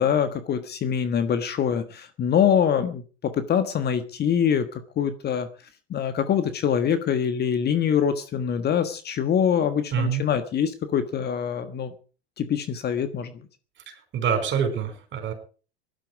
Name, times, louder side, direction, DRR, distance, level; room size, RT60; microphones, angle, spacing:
voice 1, 0.0-4.7 5.0-5.5 5.9-11.9 12.4-13.3, left 8 dB, 30° left, 10 dB, 1.5 m, -24 dB
voice 2, 9.9-10.2 14.1-15.3, right 7 dB, 35° right, 7 dB, 6.2 m, -25 dB
18.5 x 12.0 x 4.9 m, 0.38 s
hypercardioid pair, 100°, 33 cm